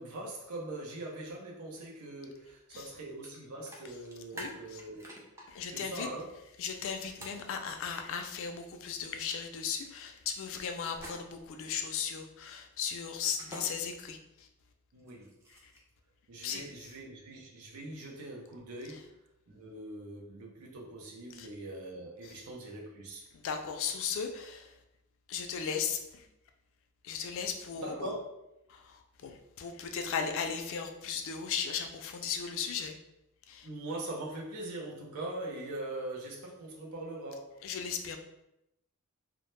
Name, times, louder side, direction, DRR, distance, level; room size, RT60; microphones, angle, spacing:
voice 1, 0.0-5.0 5.7-6.3 14.9-15.3 16.3-19.2 19.5-23.3 27.8-28.2 33.6-37.6, right 1 dB, 85° right, -2 dB, 0.5 m, -42 dB
sound 1, 3.2-3.4 3.7-5.4 7.2-7.4 10.9-11.5 13.2-13.6 15.0-15.9, right 1 dB, 10° right, 0.4 m, -46 dB
voice 2, 4.3-4.8 5.5-6.1 6.6-14.5 15.5-15.7 16.4-16.6 21.3-21.5 22.2-22.4 23.3-24.8 25.3-26.3 27.0-28.1 28.7-33.0 33.5-33.7 37.6-38.2, left 6 dB, 60° left, 5 dB, 0.3 m, -37 dB
2.0 x 2.0 x 3.0 m, 0.86 s
head